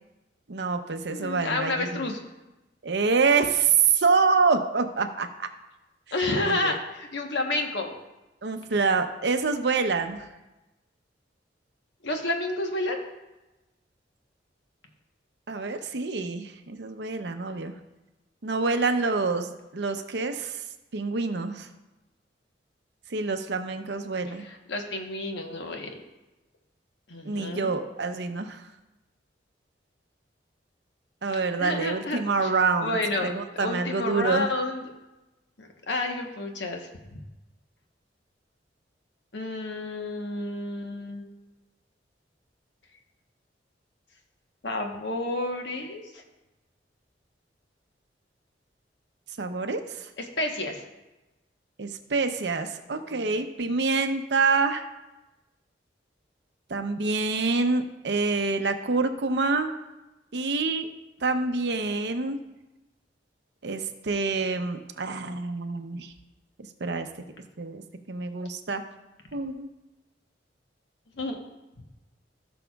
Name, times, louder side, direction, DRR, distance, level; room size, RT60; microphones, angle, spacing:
voice 1, 0.5-2.1 2.8-5.5 6.4-6.8 8.4-10.3 15.5-17.7 18.4-20.6 20.9-21.7 23.1-24.4 27.2-28.6 31.2-34.5 49.4-50.1 51.8-54.9 56.7-59.7 60.3-60.9 61.2-62.4 63.6-66.1 66.8-67.1 67.6-67.8 68.1-68.8 69.3-69.7, right 4 dB, 70° right, 7 dB, 0.7 m, -26 dB
voice 2, 1.1-2.2 6.1-7.9 12.0-13.0 24.4-26.0 27.1-27.7 31.6-32.5 32.8-34.8 35.6-36.9 39.3-41.2 44.6-46.2 50.2-50.8 71.1-71.4, left 2 dB, 75° left, 3 dB, 1.1 m, -30 dB
16.0 x 6.1 x 2.3 m, 1.0 s
head